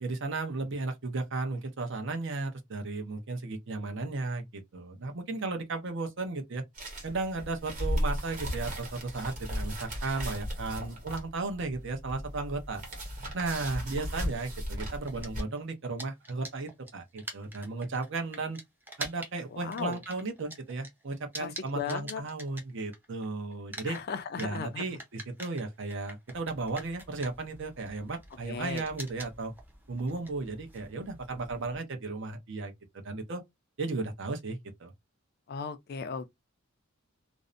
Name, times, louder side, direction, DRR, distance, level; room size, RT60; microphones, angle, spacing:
voice 1, 0.0-6.6 7.0-12.8 13.3-18.6 19.0-24.0 24.4-29.5 29.9-32.7 33.0-33.4 33.8-34.9, right 3 dB, 65° right, 0.7 m, -35 dB
sound 1, 6.7-15.4, equal, 40° right, 1.1 m, -36 dB
sound 2, 15.1-23.2 23.5-31.8, right 1 dB, 10° right, 0.6 m, -45 dB
voice 2, 19.5-20.0 21.4-22.2 23.8-24.8 28.5-28.9 35.5-36.3, left 6 dB, 50° left, 0.4 m, -36 dB
2.6 x 2.0 x 2.4 m
head